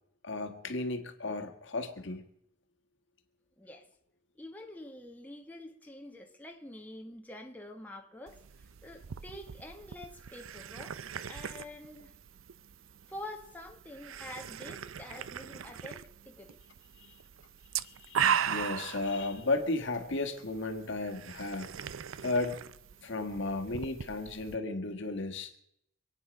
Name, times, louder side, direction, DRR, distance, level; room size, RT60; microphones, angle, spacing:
voice 1, 0.2-2.2 18.0-21.7 22.2-22.6 23.0-25.5, left 2 dB, 65° left, 1.7 m, -34 dB
voice 2, 3.6-3.9 4.4-11.0 11.2-12.1 13.1-16.6, left 1 dB, 10° left, 1.3 m, -47 dB
sound 1, 8.3-24.6, right 8 dB, 80° right, 0.5 m, -39 dB
26.0 x 9.3 x 5.2 m
head